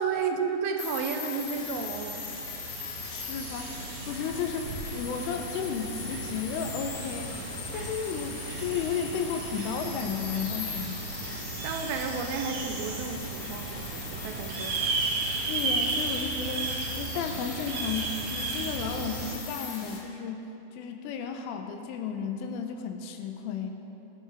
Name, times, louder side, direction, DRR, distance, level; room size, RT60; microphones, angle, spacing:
voice 1, 0.0-2.2 11.6-15.0, right 5 dB, 85° right, 5 dB, 3.4 m, -32 dB
sound 1, 0.8-20.0, left 5 dB, 70° left, 3.6 m, -40 dB
sound 2, 1.5-19.4, right 3 dB, 65° right, 3.4 m, -35 dB
voice 2, 3.1-7.4 7.7-11.1 15.5-20.5 20.7-23.7, left 6 dB, 90° left, 5 dB, 3.2 m, -33 dB
17.0 x 12.0 x 3.5 m, 2.9 s
omnidirectional pair, 5.7 m